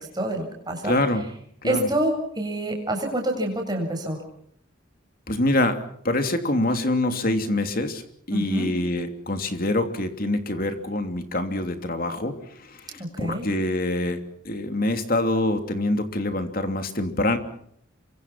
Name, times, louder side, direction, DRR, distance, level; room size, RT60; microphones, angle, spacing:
voice 1, 0.1-1.0 1.6-4.2 8.3-8.7 12.9-13.5, right 1 dB, 20° right, 2 dB, 7.7 m, -27 dB
voice 2, 0.8-1.2 1.6-1.9 5.3-5.8 6.0-8.0 8.3-12.3 12.7-17.4, left 1 dB, 45° left, 7 dB, 3.1 m, -25 dB
28.0 x 24.5 x 6.1 m, 0.68 s
head